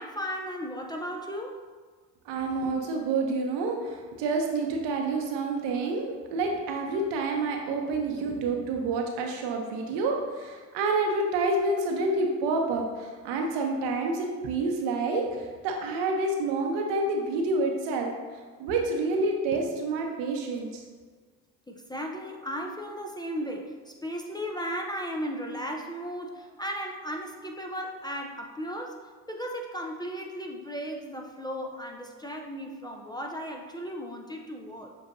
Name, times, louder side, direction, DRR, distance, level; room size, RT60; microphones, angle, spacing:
voice 1, 0.0-1.7 21.7-34.9, equal, 10° left, 1 dB, 0.4 m, -36 dB
voice 2, 2.3-12.8 13.2-15.2 15.6-18.1 18.6-20.7, right 3 dB, 75° right, 2 dB, 0.8 m, -28 dB
7.2 x 2.6 x 2.6 m, 1.4 s
hypercardioid pair, 60°, 43 cm